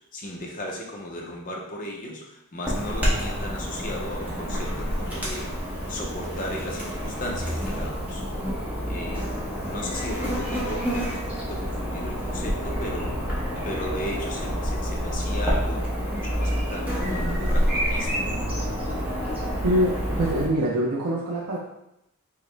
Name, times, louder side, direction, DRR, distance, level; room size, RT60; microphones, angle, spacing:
voice 1, 0.1-8.2 8.9-18.2, left 1 dB, 35° left, 0 dB, 0.6 m, -36 dB
Chirp tweet / Buzz, 2.6-20.5, equal, 5° right, 0.8 m, -28 dB
voice 2, 19.6-21.6, right 1 dB, 85° right, -4 dB, 0.5 m, -24 dB
4.8 x 2.1 x 3.2 m, 0.84 s
head